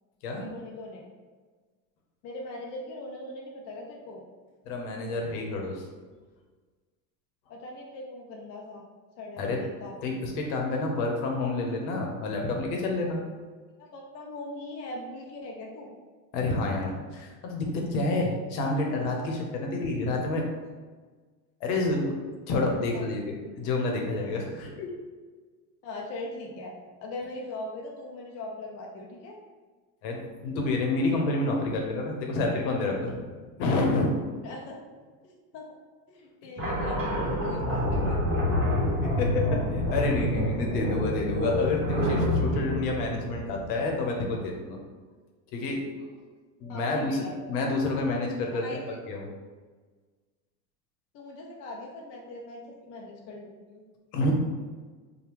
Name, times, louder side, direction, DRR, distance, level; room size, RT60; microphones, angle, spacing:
voice 1, 0.4-1.1 2.2-4.2 7.5-8.8 9.2-9.9 13.8-15.9 22.9-23.0 24.6-24.7 25.8-26.7 27.0-29.4 34.4-34.8 35.2-35.7 36.1-38.3 46.7-47.4 48.5-49.0 51.1-53.8, left 2 dB, 35° left, -1 dB, 0.4 m, -40 dB
voice 2, 4.6-5.8 9.4-9.6 10.0-13.2 16.3-20.4 21.6-24.9 30.0-33.2 33.6-34.1 39.2-44.8 45.5-45.8 46.6-48.6 49.1-49.3 54.1-54.3, left 2 dB, 60° left, 1 dB, 0.9 m, -29 dB
sound 1, 36.6-44.0, left 1 dB, 25° right, 1.2 m, -27 dB
2.8 x 2.3 x 3.3 m, 1.4 s
hypercardioid pair, 95°, 49 cm